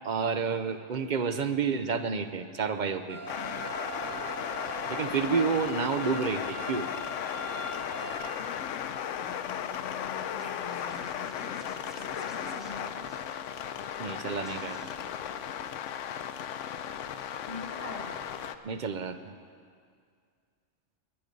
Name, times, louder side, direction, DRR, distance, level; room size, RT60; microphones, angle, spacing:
voice 1, 0.0-3.2 4.9-6.9 14.0-14.8 18.6-19.3, right 5 dB, 50° right, 9 dB, 0.6 m, -30 dB
sound 1, 3.1-8.1, right 3 dB, 85° right, 2.8 m, -41 dB
sound 2, 3.3-18.6, left 9 dB, 85° left, 0.9 m, -36 dB
voice 2, 9.2-13.1 17.5-18.2, left 3 dB, 45° left, -1 dB, 1.3 m, -44 dB
Scratching (performance technique), 10.4-13.7 14.0-14.1 14.4-14.9, equal, ahead, 1.5 m, -51 dB
21.0 x 8.8 x 5.3 m, 2.2 s
omnidirectional pair, 1.3 m